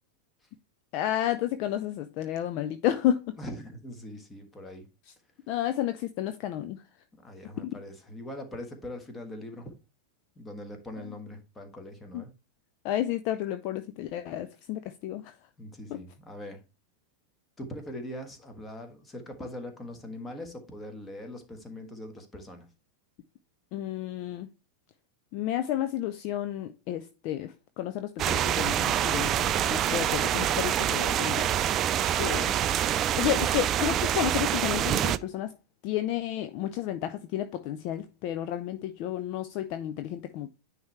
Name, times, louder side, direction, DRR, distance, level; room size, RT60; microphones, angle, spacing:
voice 1, 0.9-3.3 5.5-6.8 7.6-7.7 12.1-12.2 12.8-15.2 15.9-16.0 23.7-24.5 25.3-31.6 32.2-32.5 33.0-35.5 35.8-40.5, left 12 dB, 45° left, 0.5 m, -31 dB
voice 2, 3.4-4.9 7.2-9.7 10.3-12.3 15.6-16.6 17.6-22.7, left 1 dB, 15° left, 1.5 m, -41 dB
sound 1, 28.2-35.2, right 10 dB, 30° right, 0.3 m, -26 dB
9.5 x 3.3 x 4.3 m
figure-of-eight pair, 90°, 0 cm